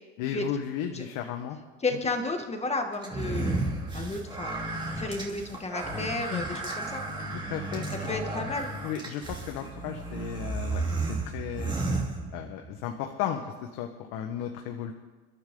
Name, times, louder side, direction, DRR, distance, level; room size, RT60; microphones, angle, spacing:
voice 1, 0.2-1.6 6.3-6.4 7.3-8.1 8.8-11.7 12.3-13.4 13.7-14.9, left 9 dB, 75° left, 4 dB, 1.5 m, -34 dB
voice 2, 1.8-3.6 3.9-4.6 5.0-7.0 8.1-8.7, left 3 dB, 20° left, 4 dB, 2.2 m, -32 dB
sound 1, 3.0-12.7, right 2 dB, 15° right, 3.2 m, -33 dB
29.0 x 11.5 x 3.9 m, 1.3 s
supercardioid pair, 115°, 35 cm